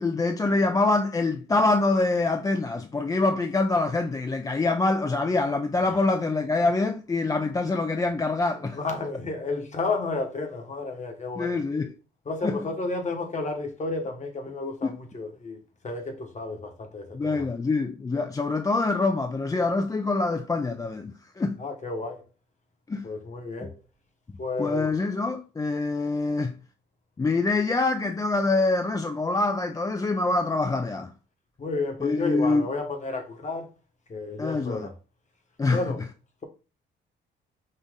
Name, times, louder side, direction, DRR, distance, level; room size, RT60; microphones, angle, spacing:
voice 1, 0.0-8.8 11.4-11.9 12.4-12.6 14.8-15.0 17.1-21.6 22.9-23.1 24.6-26.6 27.2-31.1 32.0-32.7 34.4-34.9 35.6-35.8, left 3 dB, 15° left, 0.4 m, -25 dB
voice 2, 8.6-11.6 12.2-15.6 15.8-17.5 21.6-22.2 23.0-23.8 24.4-24.9 31.6-33.7 34.1-34.9 35.7-36.0, left 3 dB, 35° left, 1.2 m, -32 dB
5.5 x 2.5 x 3.6 m
cardioid pair, 90°, 20 cm